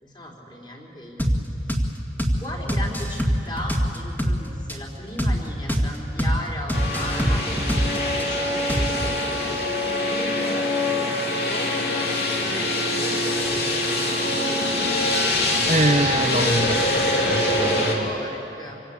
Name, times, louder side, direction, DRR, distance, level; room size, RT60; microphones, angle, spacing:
voice 1, 0.0-1.3 2.4-9.5 10.0-14.0 17.6-18.8, left 1 dB, 25° left, -2 dB, 4.0 m, -36 dB
sound 1, 1.2-1.4 1.7-1.9 2.2-2.4 2.7-4.4 4.7-4.8 5.2-5.4 5.7-5.9 6.2-6.4 6.7-8.2 8.7-9.1, equal, 10° left, 2.1 m, -23 dB
sound 2, 6.7-17.9, left 1 dB, 65° left, 3.4 m, -24 dB
voice 2, 15.7-16.9 17.3-18.1, right 2 dB, 40° right, 10 dB, 1.0 m, -24 dB
26.5 x 25.0 x 8.6 m, 2.8 s
head